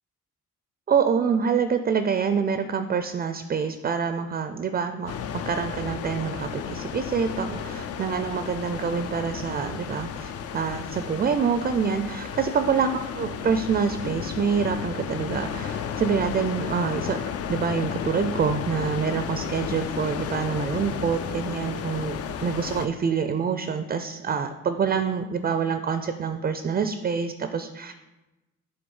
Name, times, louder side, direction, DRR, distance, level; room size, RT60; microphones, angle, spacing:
voice 1, 0.9-17.2 17.5-27.9, right 6 dB, 30° right, 9 dB, 0.4 m, -26 dB
sound 1, 5.1-22.9, left 8 dB, 50° left, 0.5 m, -33 dB
7.8 x 3.5 x 5.4 m, 1.0 s
cardioid pair, 90°, 30 cm